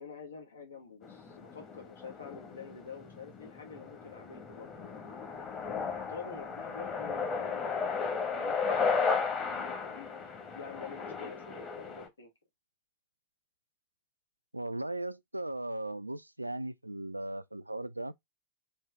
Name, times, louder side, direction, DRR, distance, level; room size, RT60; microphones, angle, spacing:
voice 1, 0.0-5.2 5.9-12.3, left 5 dB, 70° left, 1.4 m, -48 dB
sound 1, 1.0-12.1, left 5 dB, 25° left, 1.4 m, -35 dB
voice 2, 14.5-18.1, right 1 dB, 85° right, 0.3 m, -37 dB
4.4 x 3.1 x 3.4 m
figure-of-eight pair, 90°, 0 cm